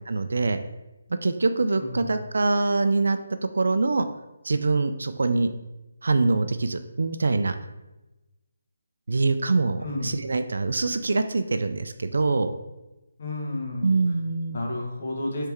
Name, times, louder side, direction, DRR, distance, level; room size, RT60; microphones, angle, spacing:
voice 1, 0.1-0.6 1.2-3.2 3.5-4.1 4.4-5.5 6.0-7.5 9.1-12.5 13.8-14.6, right 3 dB, 75° right, 8 dB, 0.3 m, -24 dB
voice 2, 1.8-2.1 9.8-10.2 13.2-13.9 14.5-15.5, left 1 dB, 55° left, -1 dB, 1.1 m, -31 dB
3.4 x 3.2 x 4.4 m, 1.0 s
hypercardioid pair, 165°, 0 cm